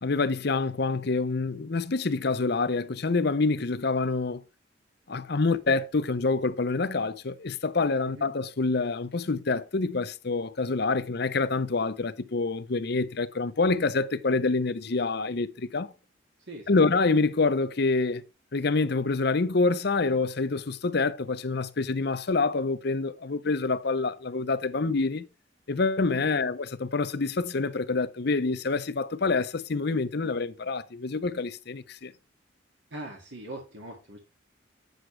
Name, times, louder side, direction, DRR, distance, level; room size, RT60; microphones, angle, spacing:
voice 1, 0.0-4.4 5.1-15.9 16.7-18.2 18.5-25.2 25.7-32.1, left 3 dB, 55° left, 0.7 m, -27 dB
voice 2, 32.9-34.2, right 1 dB, 70° right, 2.0 m, -41 dB
9.0 x 7.9 x 3.3 m
head